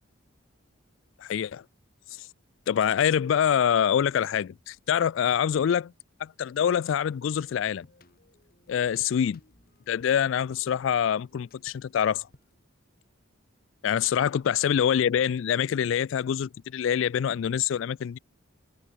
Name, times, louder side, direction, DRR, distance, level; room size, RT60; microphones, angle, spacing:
voice 1, 1.2-1.6 2.2-2.3 2.7-5.9 6.2-7.9 8.7-9.4 9.9-12.3 13.8-18.2, left 8 dB, 70° left, 0.3 m, -25 dB
sound 1, 7.3-12.7, left 2 dB, 45° left, 2.0 m, -60 dB
head